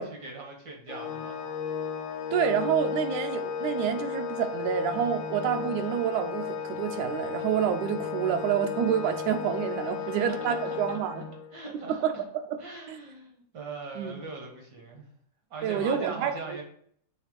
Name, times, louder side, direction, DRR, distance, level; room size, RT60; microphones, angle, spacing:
voice 1, 0.0-1.4 9.8-11.0 11.5-12.2 12.6-15.1 15.5-16.6, right 3 dB, 60° right, 1 dB, 1.1 m, -41 dB
Organ, 0.9-11.6, left 7 dB, 75° left, 1.6 m, -34 dB
voice 2, 2.3-11.2 11.9-12.6 12.9-13.0 14.0-14.2 15.6-16.6, right 8 dB, 80° right, 7 dB, 2.0 m, -28 dB
7.2 x 3.3 x 5.0 m, 0.64 s
omnidirectional pair, 3.4 m